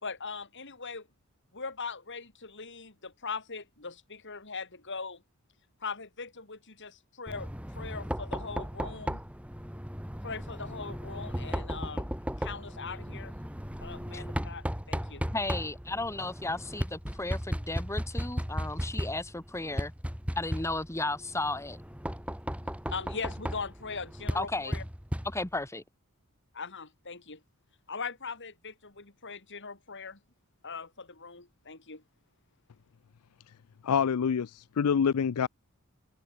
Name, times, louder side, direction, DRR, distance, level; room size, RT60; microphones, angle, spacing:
voice 1, 0.0-1.1 1.5-5.2 5.8-9.2 10.2-12.1 12.4-13.3 13.8-15.2 22.9-24.8 26.5-27.4 27.9-30.2 30.6-32.0, left 4 dB, 55° left, 5.0 m, -40 dB
Knock, 7.3-25.7, equal, 5° right, 5.5 m, -36 dB
voice 2, 15.3-19.9 20.3-21.8 24.3-24.7 25.2-25.8, left 2 dB, 15° left, 1.5 m, -34 dB
voice 3, 33.8-35.5, left 7 dB, 85° left, 0.4 m, -26 dB
open air
head